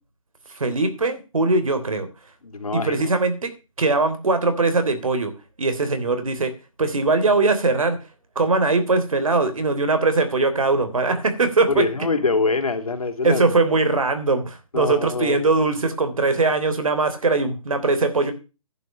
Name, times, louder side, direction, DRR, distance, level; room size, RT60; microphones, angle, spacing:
voice 1, 0.5-2.1 2.7-3.5 3.8-5.3 5.6-6.5 6.8-8.0 8.3-11.9 13.2-18.3, right 3 dB, 70° right, 9 dB, 3.2 m, -21 dB
voice 2, 2.4-3.1 11.7-13.4 14.7-15.4, left 4 dB, 90° left, 6 dB, 3.2 m, -24 dB
11.0 x 9.2 x 6.5 m, 0.32 s
hypercardioid pair, 175°, 18 cm